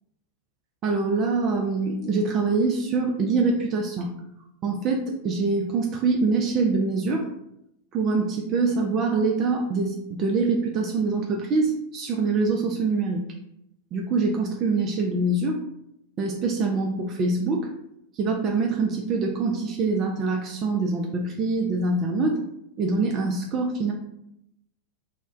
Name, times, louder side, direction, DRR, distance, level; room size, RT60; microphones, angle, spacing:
voice 1, 0.8-4.1 4.6-7.3 7.9-13.2 13.9-15.6 16.2-17.7 18.1-22.4 22.8-23.9, right 3 dB, 30° right, 0 dB, 0.3 m, -24 dB
2.1 x 2.1 x 3.5 m, 0.80 s
figure-of-eight pair, 90°, 0 cm